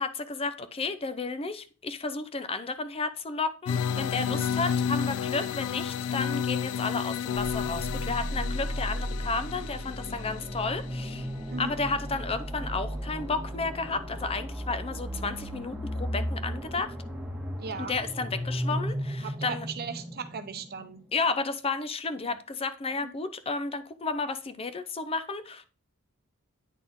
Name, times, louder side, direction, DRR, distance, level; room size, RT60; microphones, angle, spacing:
voice 1, 0.0-11.3 11.6-16.9 17.8-19.7 21.1-25.6, left 4 dB, 25° left, 0.5 m, -32 dB
sound 1, 3.6-12.4, left 7 dB, 85° left, 0.3 m, -32 dB
sound 2, 7.3-21.1, equal, 5° right, 1.7 m, -35 dB
voice 2, 17.6-17.9 19.2-21.0 22.2-22.4 23.0-23.1, right 5 dB, 45° right, 0.7 m, -38 dB
9.1 x 4.2 x 3.8 m
head